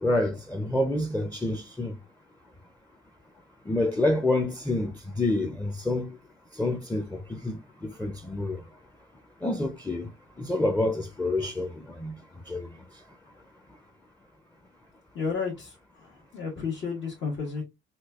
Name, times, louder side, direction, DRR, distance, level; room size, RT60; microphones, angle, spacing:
voice 1, 0.0-1.9 3.7-6.1 6.6-8.6 9.4-10.1 10.4-11.7 12.0-12.1 12.5-12.7, left 2 dB, 10° left, 0.5 m, -28 dB
voice 2, 15.1-17.6, left 5 dB, 70° left, 1.3 m, -32 dB
4.2 x 2.3 x 2.3 m
cardioid pair, 90°, 20 cm